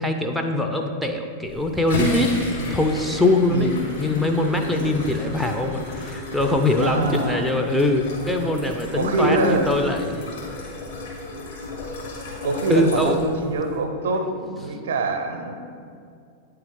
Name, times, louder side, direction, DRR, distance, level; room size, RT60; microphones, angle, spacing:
voice 1, 0.0-2.4 2.7-3.7 4.0-10.4 12.7-13.3, left 1 dB, ahead, 2 dB, 0.5 m, -22 dB
sound 1, 1.4-13.8, left 1 dB, 60° left, 1.4 m, -32 dB
voice 2, 6.8-7.5 8.9-9.7 12.4-15.5, right 2 dB, 60° right, 6 dB, 0.6 m, -24 dB
8.6 x 3.4 x 3.7 m, 2.3 s
figure-of-eight pair, 90°, 0 cm